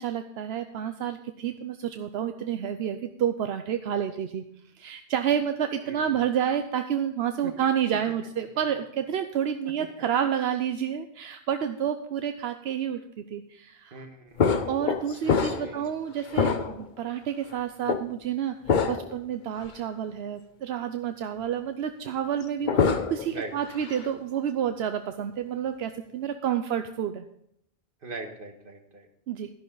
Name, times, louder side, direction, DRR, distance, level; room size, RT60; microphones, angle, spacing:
voice 1, 0.0-4.4 4.8-14.0 14.7-27.3 29.3-29.5, right 9 dB, 80° right, 8 dB, 0.9 m, -29 dB
voice 2, 5.8-6.3 7.4-7.5 13.9-14.6 15.1-15.2 15.5-15.9 23.3-23.5 28.0-29.1, right 3 dB, 60° right, 4 dB, 1.7 m, -41 dB
sound 1, 14.4-15.9 16.3-17.0 17.9-18.0 18.7-19.2 19.6-19.7 22.4-23.3 23.7-24.1, left 6 dB, 50° left, 0.9 m, -25 dB
12.5 x 11.5 x 3.9 m, 0.73 s
omnidirectional pair, 1.0 m